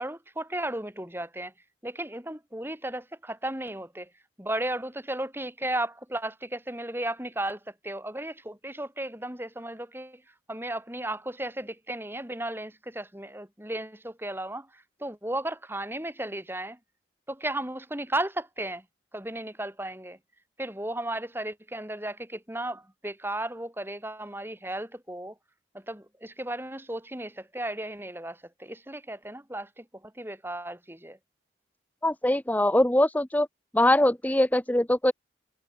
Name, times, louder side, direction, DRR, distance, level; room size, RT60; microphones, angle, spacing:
voice 1, 0.0-1.5 1.8-4.1 4.4-10.2 10.5-16.8 17.3-18.8 19.1-20.2 20.6-25.3 25.7-31.2, right 1 dB, 10° right, 4.9 m, -35 dB
voice 2, 32.0-33.5 33.7-35.1, left 1 dB, 10° left, 0.7 m, -22 dB
head